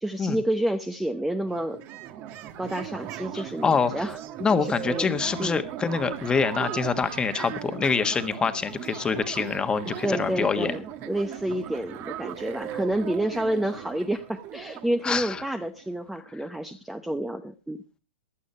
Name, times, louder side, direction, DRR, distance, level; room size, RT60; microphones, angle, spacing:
voice 1, 0.0-1.8 2.6-4.2 4.6-5.1 5.4-5.6 10.0-17.8, right 1 dB, 5° right, 8 dB, 0.8 m, -29 dB
sound 1, 1.0-1.1 1.3-15.9, right 11 dB, 35° right, 1.3 m, -38 dB
voice 2, 3.3-4.1 4.4-10.7 15.0-15.4, left 5 dB, 15° left, 9 dB, 1.4 m, -25 dB
16.0 x 11.5 x 4.3 m, 0.32 s
hypercardioid pair, 135°, 6 cm